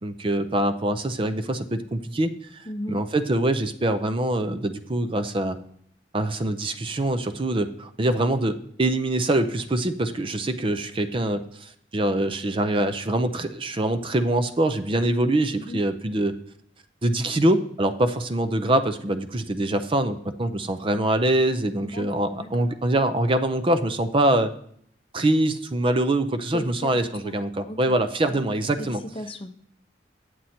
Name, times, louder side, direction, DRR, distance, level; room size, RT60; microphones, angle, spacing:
voice 1, 0.0-2.6 2.9-5.6 6.1-16.3 17.0-24.5 25.1-29.0, right 1 dB, 30° right, 9 dB, 0.5 m, -24 dB
voice 2, 2.7-3.0 15.5-15.8 21.8-22.7 26.5-27.4 27.6-28.0 28.3-28.5 28.8-28.9 29.1-29.5, left 1 dB, 30° left, 6 dB, 0.7 m, -36 dB
9.2 x 7.6 x 4.3 m, 0.64 s
head